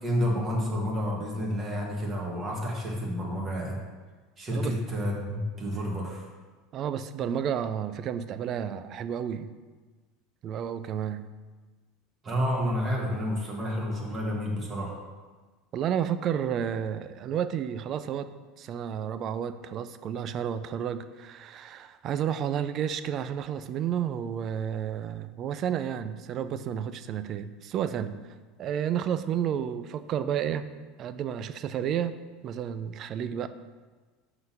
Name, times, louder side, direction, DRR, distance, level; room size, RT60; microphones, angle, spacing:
voice 1, 0.0-3.8 4.4-6.3 12.2-15.0, equal, 30° right, -2 dB, 1.6 m, -30 dB
voice 2, 6.7-9.5 10.4-11.2 15.7-18.3 18.6-28.2 28.6-30.7 31.0-32.2 32.4-33.5, right 9 dB, 45° right, 12 dB, 0.4 m, -31 dB
5.5 x 3.9 x 5.8 m, 1.4 s
supercardioid pair, 105°, 0 cm